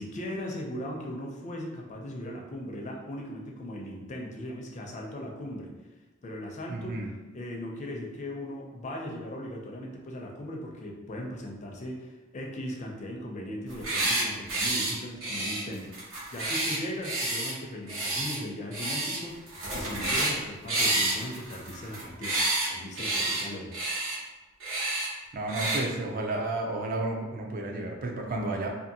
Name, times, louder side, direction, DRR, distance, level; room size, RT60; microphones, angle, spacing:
voice 1, 0.0-5.7 6.2-7.0 7.3-23.7, left 1 dB, 35° left, 0 dB, 0.4 m, -38 dB
voice 2, 6.7-7.1 25.3-28.7, right 2 dB, 45° right, 1 dB, 0.4 m, -32 dB
sound 1, 13.7-14.2 14.5-14.9 15.2-17.5 17.9-18.4 18.7-19.2 19.5-20.4 20.7-22.7 22.9-23.4 23.7-24.2 24.6-25.1 25.5-25.8, right 2 dB, 85° right, 1.0 m, -29 dB
2.6 x 2.5 x 2.7 m, 1.2 s
head